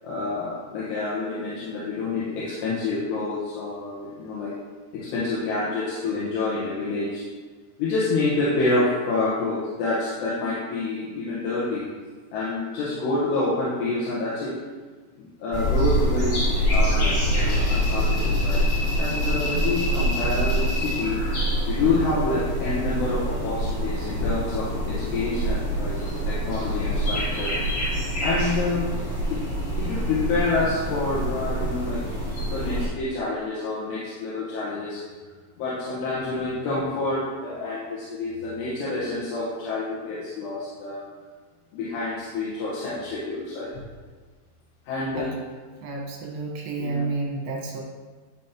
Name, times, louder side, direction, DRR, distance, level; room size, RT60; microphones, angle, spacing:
voice 1, 0.0-4.5 4.9-7.2 7.8-11.9 12.3-14.6 15.2-16.4 16.7-18.6 19.0-21.2 21.7-27.5 28.2-28.9 29.3-29.4 29.8-35.0 35.6-41.0 41.7-43.7 44.9-45.3 46.8-47.0, left 3 dB, 90° left, -9 dB, 3.5 m, -28 dB
sound 1, 15.5-32.9, equal, 35° left, 2.1 m, -25 dB
voice 2, 45.8-47.8, right 3 dB, 70° right, -1 dB, 3.0 m, -30 dB
11.5 x 5.2 x 2.9 m, 1.4 s
omnidirectional pair, 4.8 m